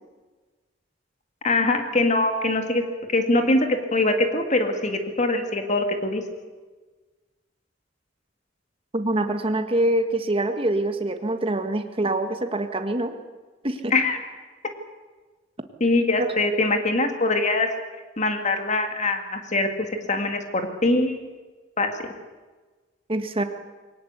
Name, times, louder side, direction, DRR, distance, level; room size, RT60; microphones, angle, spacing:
voice 1, 1.4-2.8 3.1-6.2 13.9-14.2 15.8-17.7 18.2-19.7 20.1-21.3 21.8-21.9, left 2 dB, 40° left, 5 dB, 2.2 m, -23 dB
voice 2, 8.9-13.1 13.6-13.9 23.1-23.4, right 1 dB, 30° right, 7 dB, 1.8 m, -25 dB
22.5 x 18.5 x 8.2 m, 1.3 s
head